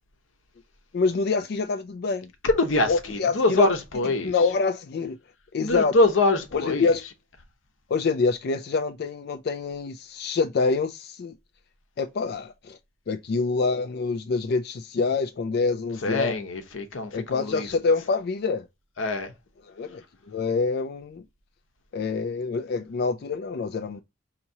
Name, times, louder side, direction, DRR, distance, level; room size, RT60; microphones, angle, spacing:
voice 1, 0.9-2.3 2.9-3.7 4.2-5.2 5.5-5.9 6.5-7.0 7.9-11.4 12.0-12.8 13.1-16.4 17.1-18.7 19.6-21.2 21.9-24.0, left 4 dB, 55° left, 0.4 m, -26 dB
voice 2, 2.4-4.3 5.6-6.9 16.0-17.7 19.0-19.3, left 2 dB, 90° left, 0.9 m, -24 dB
5.7 x 2.9 x 2.7 m
head